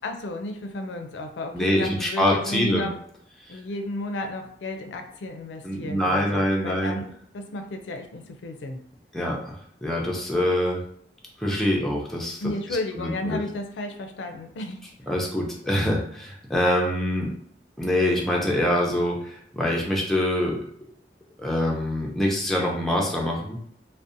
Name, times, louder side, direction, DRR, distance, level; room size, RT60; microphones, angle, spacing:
voice 1, 0.0-3.0 3.5-8.8 12.4-14.8, left 1 dB, 90° left, 5 dB, 0.4 m, -33 dB
voice 2, 1.5-2.9 3.5-3.6 5.6-7.0 9.1-10.8 11.4-12.4 13.0-13.4 15.1-17.3 17.8-20.6 21.4-23.6, left 1 dB, ahead, -2 dB, 0.4 m, -25 dB
2.6 x 2.0 x 2.5 m, 0.66 s
head